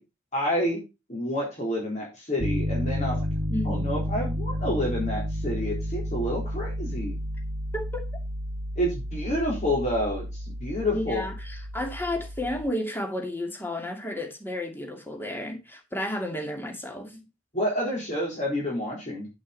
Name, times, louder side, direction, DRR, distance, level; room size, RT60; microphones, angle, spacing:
voice 1, 0.3-0.8 1.1-3.3 3.6-7.2 8.8-11.2 17.5-19.3, left 1 dB, 40° left, 3.9 m, -29 dB
Piano, 2.4-12.7, equal, 70° right, 1.1 m, -31 dB
voice 2, 3.5-4.0 7.7-8.1 10.9-17.2, left 1 dB, 10° left, 2.4 m, -32 dB
8.4 x 8.3 x 4.1 m
head